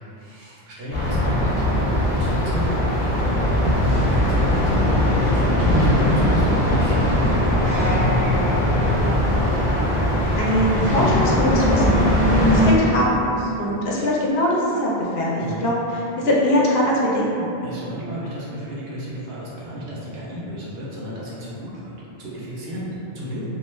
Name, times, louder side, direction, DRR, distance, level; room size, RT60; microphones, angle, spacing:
voice 1, 0.2-1.5 2.1-8.4 12.4-12.6 15.4-15.6 17.6-23.5, equal, 75° right, -6 dB, 0.9 m, -33 dB
sound 1, 0.9-12.7, left 1 dB, 35° left, 0.7 m, -19 dB
voice 2, 10.4-17.6, equal, 75° left, -4 dB, 0.8 m, -22 dB
2.3 x 2.2 x 3.1 m, 2.9 s
omnidirectional pair, 1.0 m